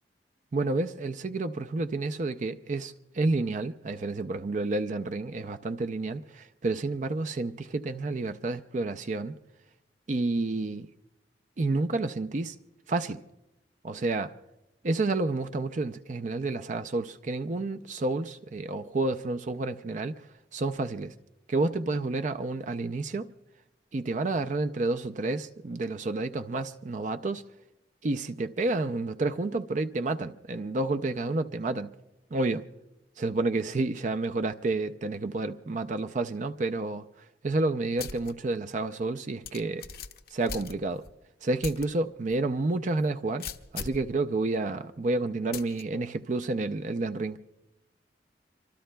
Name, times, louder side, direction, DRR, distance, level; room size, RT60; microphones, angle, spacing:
voice 1, 0.5-9.4 10.1-10.9 11.6-12.6 12.9-13.2 13.8-14.3 14.8-21.1 21.5-23.3 23.9-27.4 28.0-31.9 32.3-32.6 33.2-39.9 40.3-41.0 41.4-43.5 43.7-47.4, right 2 dB, 45° right, 0.5 m, -30 dB
sound 1, 38.0-38.3 38.7-38.8 39.4-41.1 41.6-41.9 42.3-42.4 43.4-44.1 45.5-45.8, left 6 dB, 55° left, 0.7 m, -39 dB
26.5 x 24.0 x 2.3 m
head